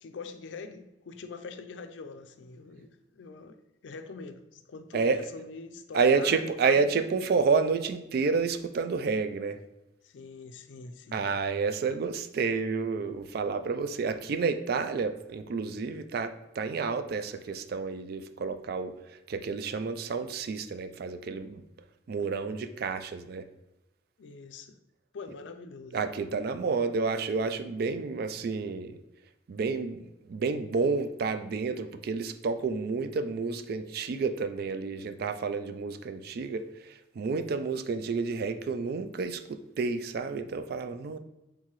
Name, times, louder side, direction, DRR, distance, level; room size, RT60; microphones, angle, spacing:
voice 1, 0.0-3.6 3.8-6.9 10.0-11.3 24.2-24.8 25.1-26.0, left 4 dB, 85° left, 0.4 m, -44 dB
voice 2, 5.9-9.6 11.1-21.6 22.1-23.5 25.9-29.0 29.5-41.2, right 4 dB, 55° right, 0.3 m, -30 dB
4.6 x 3.8 x 3.0 m
head